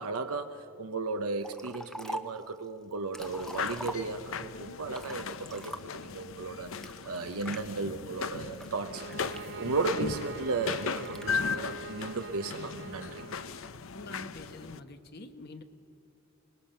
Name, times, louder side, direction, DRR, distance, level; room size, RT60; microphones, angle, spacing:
voice 1, 0.0-13.2, right 4 dB, 85° right, 7 dB, 0.8 m, -35 dB
Liquid, 1.4-2.4 2.9-4.4 4.9-6.1 6.8-7.6 8.2-9.9 10.7-11.4, equal, 5° left, 0.7 m, -43 dB
sound 1, 3.2-14.8, left 5 dB, 65° left, 0.7 m, -37 dB
sound 2, 8.8-13.7, right 4 dB, 50° right, 0.4 m, -44 dB
voice 2, 13.9-15.6, left 2 dB, 45° left, 7 dB, 1.2 m, -45 dB
26.5 x 20.5 x 5.7 m, 2.7 s
head